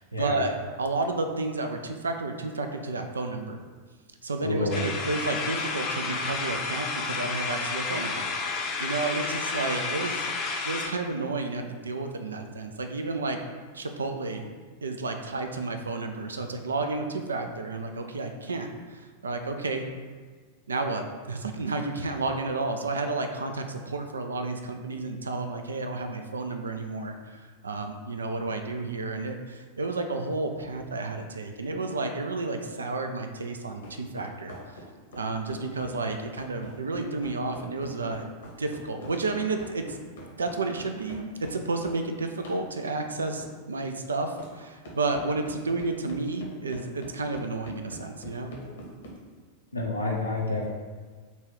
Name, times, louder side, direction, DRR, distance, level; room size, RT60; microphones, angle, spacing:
voice 1, 0.0-3.6 4.2-10.3 10.7-13.4 13.7-14.5 14.8-19.9 20.7-34.8 35.2-38.2 38.6-40.0 40.4-48.5, right 3 dB, 70° right, 5 dB, 0.4 m, -31 dB
voice 2, 4.4-4.8 49.7-50.7, left 2 dB, 85° left, -3 dB, 0.7 m, -28 dB
sound 1, 4.7-10.9, left 4 dB, 35° left, 0.5 m, -31 dB
sound 2, 33.8-42.0 42.4-42.7 43.4-43.5 44.4-44.5 44.8-49.2, equal, 65° left, 0.9 m, -44 dB
4.0 x 2.3 x 4.6 m, 1.4 s
figure-of-eight pair, 90°, 0 cm